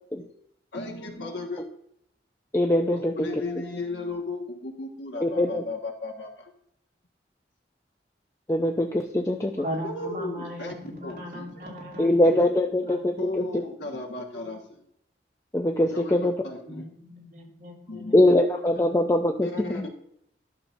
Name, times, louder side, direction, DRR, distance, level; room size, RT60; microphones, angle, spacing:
voice 1, 0.7-1.7 2.9-6.5 9.8-11.5 13.2-14.8 15.9-16.9 17.9-18.2 19.4-19.9, left 2 dB, 85° left, 2 dB, 1.5 m, -35 dB
voice 2, 2.5-3.3 5.2-5.6 8.5-9.7 12.0-13.6 15.5-16.3 18.1-19.9, left 1 dB, 15° left, 3 dB, 0.4 m, -22 dB
voice 3, 9.6-12.5 12.9-13.0 13.4-13.6 16.7-18.5 18.7-18.9, equal, 50° right, -3 dB, 2.8 m, -38 dB
12.0 x 6.7 x 2.6 m, 0.72 s
head